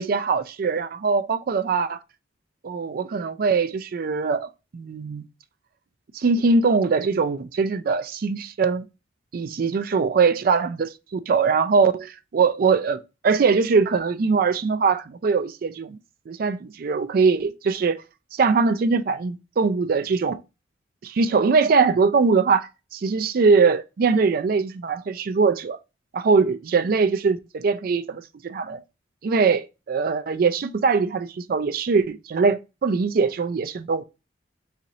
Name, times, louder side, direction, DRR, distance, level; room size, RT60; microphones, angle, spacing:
voice 1, 0.0-2.0 2.6-5.3 6.1-8.9 9.3-16.0 16.3-18.0 18.3-20.4 21.0-25.8 26.1-28.8 29.2-34.0, right 4 dB, 50° right, 0.3 m, -22 dB
4.1 x 2.9 x 2.6 m
head